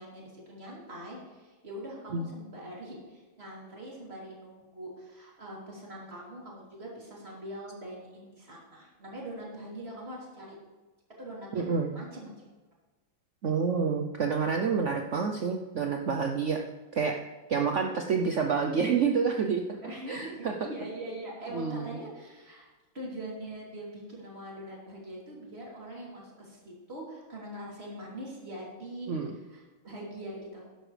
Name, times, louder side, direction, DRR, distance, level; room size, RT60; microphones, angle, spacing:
voice 1, 0.0-10.6 11.2-12.4 17.8-18.0 19.8-30.7, right 1 dB, 30° right, -4 dB, 3.3 m, -43 dB
voice 2, 11.5-11.9 13.4-16.6 16.9-17.2 17.5-19.8 20.1-20.7 21.5-22.0 29.1-29.4, right 5 dB, 85° right, 3 dB, 0.6 m, -28 dB
12.5 x 11.0 x 3.3 m, 1.3 s
omnidirectional pair, 2.2 m